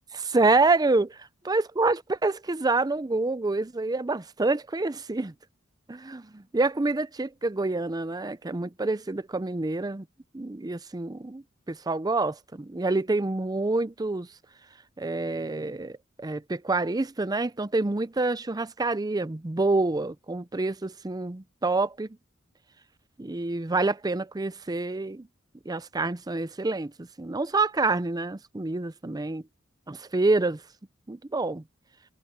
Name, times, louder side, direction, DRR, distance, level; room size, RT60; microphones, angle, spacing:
voice 1, 0.1-1.2 1.5-5.3 5.9-10.1 10.3-14.3 15.0-22.1 23.2-25.3 25.7-29.4 29.9-30.6 31.1-31.6, right 3 dB, 20° right, 0.5 m, -27 dB
head